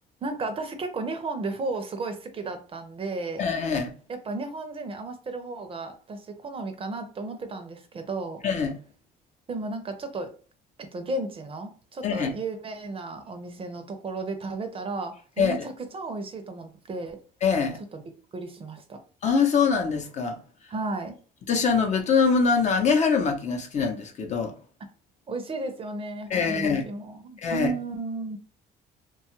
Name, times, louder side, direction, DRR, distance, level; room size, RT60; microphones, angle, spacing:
voice 1, 0.2-3.5 4.1-8.4 9.5-10.3 10.8-17.2 17.9-18.0 18.3-19.0 20.7-21.2 25.3-28.4, right 3 dB, 35° right, 0.5 m, -34 dB
voice 2, 3.4-3.9 8.4-8.8 12.0-12.3 15.4-15.6 17.4-17.8 19.2-20.4 21.5-24.5 26.3-26.8 27.4-27.7, left 5 dB, 45° left, 0.6 m, -23 dB
2.8 x 2.3 x 3.0 m
cardioid pair, 110°, 17 cm